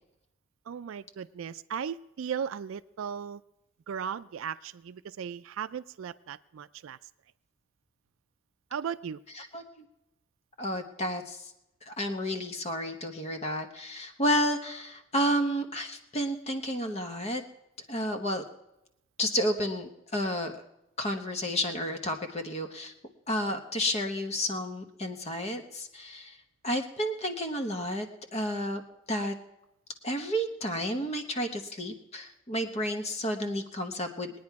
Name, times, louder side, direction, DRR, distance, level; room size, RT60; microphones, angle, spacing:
voice 1, 0.7-3.4 3.9-7.0 8.7-9.2, right 7 dB, 80° right, 13 dB, 0.4 m, -36 dB
voice 2, 9.3-9.8 10.6-11.5 11.9-17.4 17.9-18.4 19.2-20.6 21.0-22.9 23.3-26.4 26.6-28.1 28.3-28.8 29.1-29.3 30.0-34.3, equal, 30° left, 5 dB, 1.0 m, -31 dB
20.5 x 9.5 x 4.7 m, 0.88 s
head